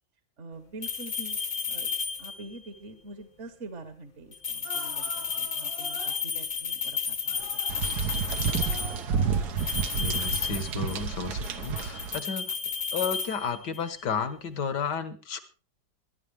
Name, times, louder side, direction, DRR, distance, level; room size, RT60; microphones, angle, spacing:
voice 1, 0.4-1.4 1.7-1.9 2.2-7.4, right 2 dB, 40° right, 8 dB, 1.5 m, -45 dB
sound 1, 0.8-2.6 4.3-9.0 9.6-11.1 11.4-13.9, left 5 dB, 30° left, 1.0 m, -32 dB
sound 2, 4.6-6.2 7.3-7.7 8.1-9.8 10.5-10.7, equal, 80° right, 7.8 m, -45 dB
sound 3, 7.7-12.2, right 6 dB, 65° right, 1.4 m, -30 dB
voice 2, 10.0-12.6 12.9-15.4, left 6 dB, 65° left, 11 dB, 2.0 m, -32 dB
22.5 x 10.5 x 3.4 m, 0.34 s
omnidirectional pair, 2.0 m